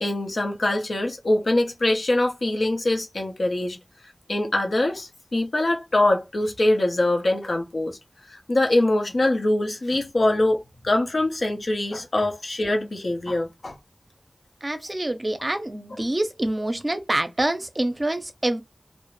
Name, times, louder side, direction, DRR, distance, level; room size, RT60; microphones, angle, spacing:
voice 1, 0.0-3.8 4.3-8.0 8.3-13.8, left 1 dB, 80° left, 0.7 m, -23 dB
voice 2, 14.6-18.6, right 1 dB, 35° right, 0.5 m, -26 dB
2.4 x 2.0 x 3.0 m
wide cardioid pair, 50°, 0 cm